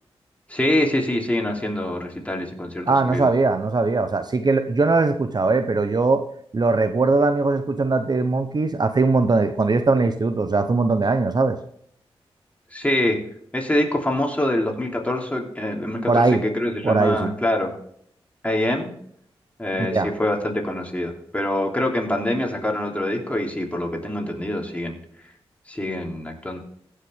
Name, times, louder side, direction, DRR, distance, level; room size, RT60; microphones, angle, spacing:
voice 1, 0.5-3.2 12.7-13.2 13.5-17.7 18.4-18.9 19.6-24.9 25.7-26.6, left 1 dB, 15° left, 0 dB, 3.1 m, -25 dB
voice 2, 2.9-6.2 6.5-11.6 16.1-16.4 16.8-17.3 19.9-20.1, right 3 dB, 40° right, 9 dB, 0.8 m, -20 dB
15.5 x 6.5 x 3.5 m, 0.67 s
cardioid pair, 45°, 10 cm